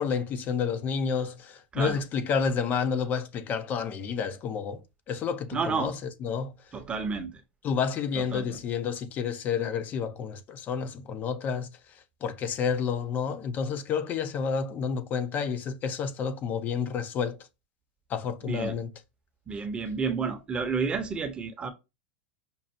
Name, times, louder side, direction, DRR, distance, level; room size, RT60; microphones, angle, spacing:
voice 1, 0.0-4.8 5.1-6.5 7.6-11.7 12.2-17.4 18.1-18.9, left 6 dB, 35° left, 0.6 m, -30 dB
voice 2, 5.5-5.9 6.7-7.4 8.2-8.6 18.4-18.8 19.5-21.7, right 5 dB, 20° right, 0.8 m, -31 dB
5.3 x 2.4 x 2.6 m
supercardioid pair, 125°, 5 cm